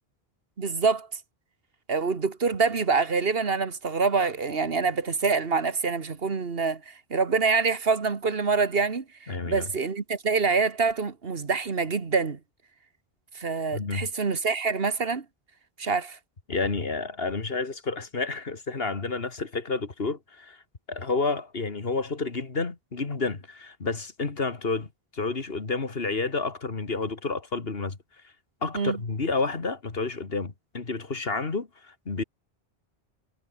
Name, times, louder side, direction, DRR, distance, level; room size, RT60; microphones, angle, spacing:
voice 1, 0.6-1.1 1.9-12.4 13.4-15.3 15.8-16.2 28.7-29.0, right 4 dB, 65° right, 1.8 m, -26 dB
voice 2, 9.3-9.7 13.7-14.1 16.5-20.6 20.9-28.0 28.6-32.2, left 3 dB, 65° left, 2.4 m, -30 dB
omnidirectional pair, 1.1 m